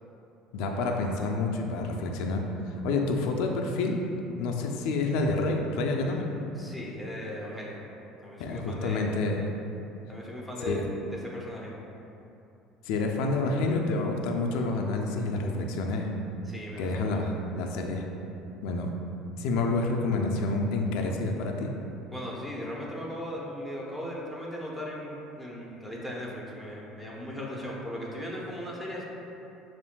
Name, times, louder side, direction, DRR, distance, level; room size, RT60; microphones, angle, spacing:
voice 1, 0.5-2.4 2.8-4.0 4.4-6.3 8.4-9.4 10.7-10.8 12.8-16.1 16.8-18.1 18.6-18.9 19.4-21.7, left 3 dB, 75° left, 2 dB, 0.4 m, -28 dB
voice 2, 6.6-7.8 8.2-9.2 10.1-11.7 16.5-17.1 22.1-29.0, equal, 5° right, -4 dB, 0.8 m, -38 dB
6.9 x 2.5 x 2.2 m, 2.8 s
supercardioid pair, 100°, 0 cm